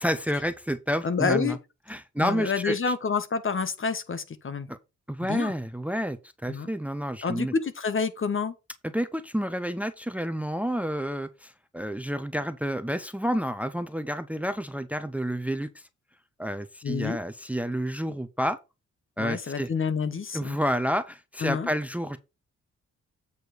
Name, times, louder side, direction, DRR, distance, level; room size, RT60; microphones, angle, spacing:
voice 1, 0.0-1.6 1.9-2.8 4.7-4.8 5.1-7.5 8.8-15.8 16.4-18.6 19.2-19.7 20.3-22.2, equal, 5° right, 0.8 m, -29 dB
voice 2, 1.0-1.6 2.2-4.7 5.3-5.5 6.5-6.7 7.2-8.5 16.8-17.2 19.2-20.6 21.4-21.7, left 5 dB, 45° left, 1.2 m, -28 dB
8.3 x 4.5 x 5.0 m
cardioid pair, 85°, 29 cm